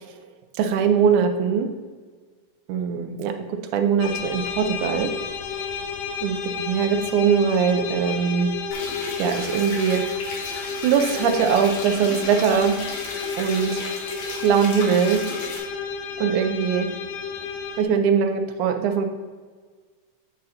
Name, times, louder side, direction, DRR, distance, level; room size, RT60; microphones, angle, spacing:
voice 1, 0.6-1.7 2.7-3.3 3.7-5.1 6.2-8.5 9.2-10.0 10.8-12.8 13.4-13.8 14.4-15.2 16.2-16.9 17.8-19.1, right 7 dB, 85° right, 7 dB, 2.1 m, -21 dB
sound 1, 4.0-17.8, left 6 dB, 85° left, 2.2 m, -32 dB
sound 2, 8.7-15.6, left 2 dB, 70° left, 2.5 m, -35 dB
8.7 x 6.4 x 2.8 m, 1.5 s
omnidirectional pair, 3.5 m